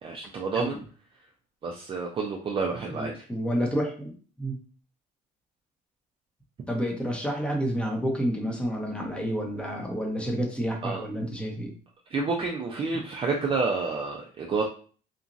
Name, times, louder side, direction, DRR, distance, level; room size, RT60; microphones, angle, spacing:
voice 1, 0.0-0.8 1.6-3.2 10.8-11.0 12.1-14.6, right 4 dB, 30° right, 0 dB, 0.4 m, -29 dB
voice 2, 2.9-4.6 6.7-11.7, equal, 5° left, 1 dB, 0.8 m, -29 dB
2.9 x 2.4 x 2.6 m, 0.40 s
cardioid pair, 110°, 17 cm